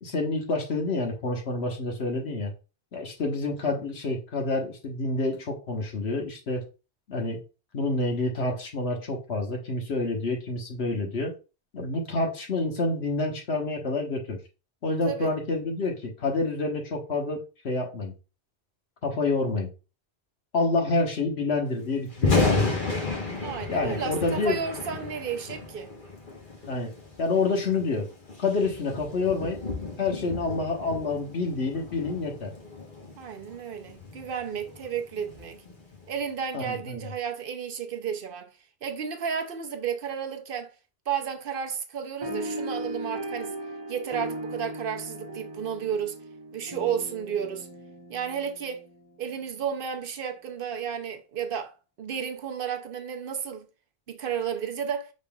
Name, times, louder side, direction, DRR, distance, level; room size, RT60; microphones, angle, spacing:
voice 1, 0.0-2.5 2.9-6.6 7.1-7.4 7.7-11.3 11.7-14.4 14.8-18.1 19.0-19.7 20.5-22.7 23.7-24.6 26.7-26.9 27.2-28.1 28.4-29.6 30.0-32.5 36.5-37.0, left 3 dB, 70° left, 1.4 m, -28 dB
Thunder, 22.1-36.2, left 3 dB, 50° left, 1.3 m, -32 dB
voice 2, 23.4-25.9 33.1-35.6 36.1-38.5 38.8-40.7 41.1-43.5 43.9-46.2 46.5-47.7 48.1-48.8 49.2-53.6 54.1-55.1, right 7 dB, 60° right, 0.8 m, -32 dB
sound 1, 42.2-49.1, right 1 dB, 30° right, 0.5 m, -37 dB
5.3 x 4.0 x 2.3 m
omnidirectional pair, 1.1 m